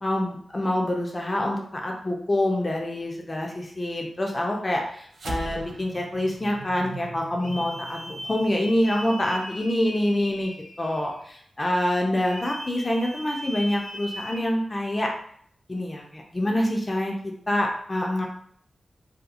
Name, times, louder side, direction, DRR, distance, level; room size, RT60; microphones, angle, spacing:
voice 1, 0.0-10.5 10.8-15.1 15.7-18.3, left 1 dB, 20° left, 0 dB, 0.4 m, -26 dB
sound 1, 5.1-9.8, right 2 dB, 65° right, 0.3 m, -40 dB
sound 2, 7.4-11.3 12.2-14.4, equal, 80° left, 1.0 m, -39 dB
2.7 x 2.3 x 2.4 m, 0.62 s
wide cardioid pair, 150°, 0 cm